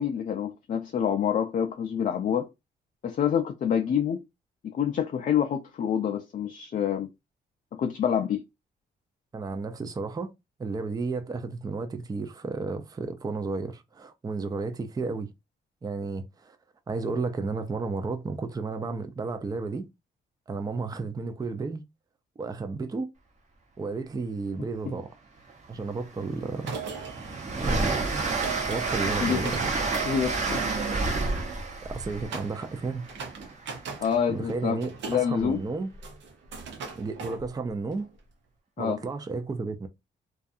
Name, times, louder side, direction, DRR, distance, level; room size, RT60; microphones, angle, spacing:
voice 1, 0.0-2.5 3.0-4.2 4.6-7.1 7.7-8.4 29.2-29.5 30.1-30.6 34.0-34.8 35.1-35.6 38.8-39.0, left 8 dB, 45° left, 0.4 m, -27 dB
voice 2, 9.3-10.3 10.6-15.3 15.8-16.6 16.9-19.9 20.5-21.8 22.4-23.1 23.8-25.2 25.7-26.7 27.5-28.2 28.7-29.7 31.8-33.1 34.3-35.9 36.9-38.1 38.8-39.9, right 4 dB, 20° right, 0.4 m, -32 dB
Train, 25.5-25.6 26.0-33.7, right 3 dB, 40° right, 0.8 m, -30 dB
sound 1, 26.5-31.2 32.3-32.8 33.0-34.2 34.5-38.1, right 5 dB, 80° right, 0.7 m, -39 dB
2.6 x 2.3 x 2.4 m
cardioid pair, 70°, 19 cm